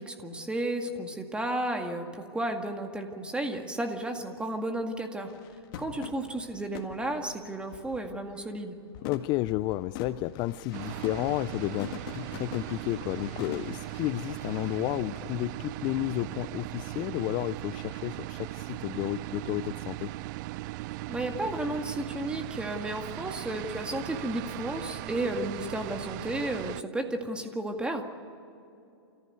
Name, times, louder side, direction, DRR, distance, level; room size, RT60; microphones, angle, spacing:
voice 1, 0.0-5.3 5.8-8.8 21.1-28.0, right 1 dB, 5° right, 4 dB, 2.0 m, -33 dB
sound 1, 5.3-8.6 8.9-14.8, left 9 dB, 50° left, 1.9 m, -44 dB
voice 2, 9.0-20.1, left 16 dB, 35° left, 16 dB, 0.4 m, -32 dB
sound 2, 10.7-26.8, right 17 dB, 45° right, 0.5 m, -38 dB
28.5 x 14.5 x 8.1 m, 2.7 s
hypercardioid pair, 130°, 14 cm